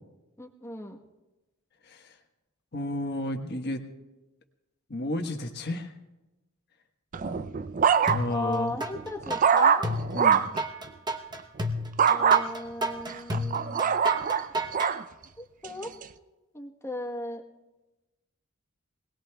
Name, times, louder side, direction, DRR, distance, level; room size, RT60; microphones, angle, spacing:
voice 1, 0.4-1.0 8.3-9.9 12.1-14.1 15.4-15.9 16.5-17.4, left 2 dB, 15° left, 2 dB, 1.1 m, -36 dB
voice 2, 2.7-3.8 4.9-5.9 8.1-8.8 10.1-10.4, left 1 dB, 50° left, 5 dB, 1.2 m, -32 dB
sound 1, 7.1-8.5 8.9-10.6 12.0-12.4 13.1-15.0 15.6-16.0, right 7 dB, 40° right, 0.4 m, -23 dB
sound 2, 8.1-8.9 9.3-14.9, equal, 20° right, 0.9 m, -31 dB
25.0 x 19.0 x 2.3 m, 1.1 s
head